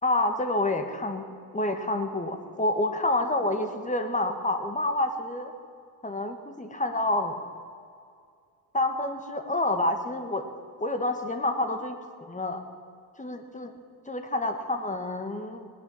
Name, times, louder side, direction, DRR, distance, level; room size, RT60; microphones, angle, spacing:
voice 1, 0.0-1.2 1.5-5.5 6.0-7.4 8.7-10.4 10.8-12.6 13.2-13.7 14.1-15.7, left 2 dB, 15° left, 6 dB, 1.7 m, -28 dB
18.0 x 10.5 x 7.3 m, 2.3 s
supercardioid pair, 85°, 48 cm